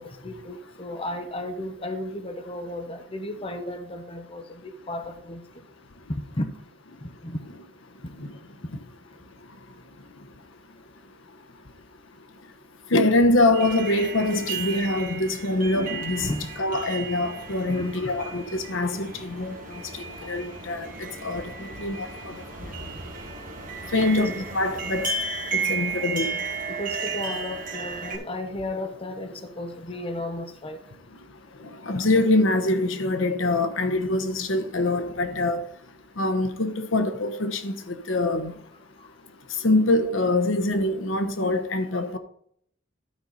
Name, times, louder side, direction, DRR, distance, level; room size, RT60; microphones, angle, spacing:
voice 1, 0.0-5.6 6.1-6.5 7.0-7.4 16.2-16.5 17.7-18.1 20.2-20.4 23.9-24.3 26.7-30.8 39.0-39.1, left 1 dB, 30° left, 1.0 m, -34 dB
voice 2, 12.9-16.3 16.6-19.6 19.9-22.4 23.9-25.1 25.5-26.3 31.8-35.6 36.2-38.5 39.6-42.2, left 2 dB, 85° left, 1.0 m, -24 dB
sound 1, 13.5-28.2, right 4 dB, 45° right, 1.9 m, -34 dB
12.5 x 5.5 x 4.1 m
head